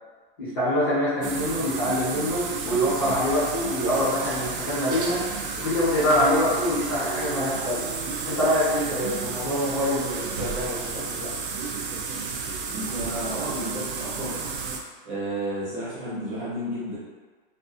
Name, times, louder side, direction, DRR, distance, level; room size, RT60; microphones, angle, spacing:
voice 1, 0.4-5.2 5.5-7.9 8.2-11.3, equal, 25° left, -11 dB, 0.7 m, -25 dB
sound 1, 1.2-14.8, right 5 dB, 70° right, 0.5 m, -32 dB
voice 2, 12.7-14.4 15.0-17.0, right 1 dB, 25° right, -10 dB, 1.0 m, -32 dB
2.5 x 2.4 x 2.5 m, 1.4 s
hypercardioid pair, 175°, 29 cm